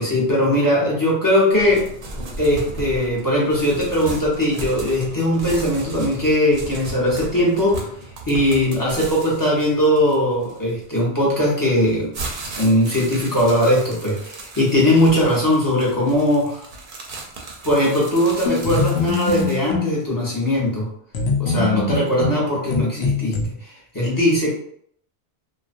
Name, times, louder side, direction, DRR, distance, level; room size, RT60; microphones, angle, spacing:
voice 1, 0.0-1.9 2.4-7.9 8.3-12.1 12.5-16.6 17.6-20.9 21.4-24.5, left 1 dB, 25° left, -5 dB, 0.6 m, -19 dB
sound 1, 1.5-11.0 11.6-19.7, right 2 dB, 60° right, 0.6 m, -35 dB
sound 2, 18.5-19.9 21.1-23.5, left 4 dB, 80° left, 0.8 m, -23 dB
2.4 x 2.1 x 2.4 m, 0.65 s
omnidirectional pair, 1.1 m